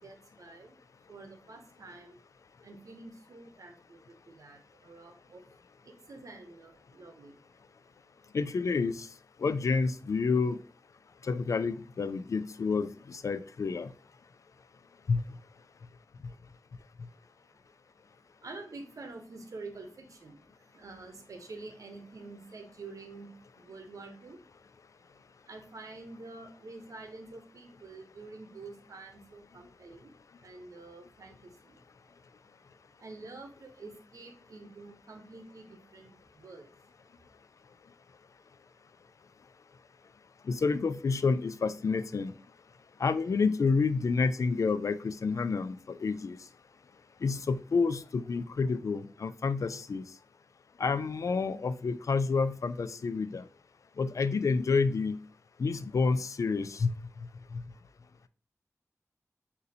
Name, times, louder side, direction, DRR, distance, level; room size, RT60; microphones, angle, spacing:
voice 1, 0.0-2.2 2.6-5.5 5.8-7.7 17.5-17.6 18.4-24.4 25.1-30.1 30.4-32.1 32.4-32.5 33.0-36.7, right 3 dB, 80° right, 6 dB, 0.8 m, -48 dB
voice 2, 8.3-9.1 9.4-10.6 11.2-13.9 15.1-15.2 40.5-42.3 43.0-46.4 47.2-50.0 50.8-53.4 54.0-55.2 55.6-56.9 57.5-57.6, left 4 dB, 70° left, 14 dB, 0.3 m, -29 dB
6.5 x 2.7 x 2.7 m, 0.38 s
cardioid pair, 45°, 6 cm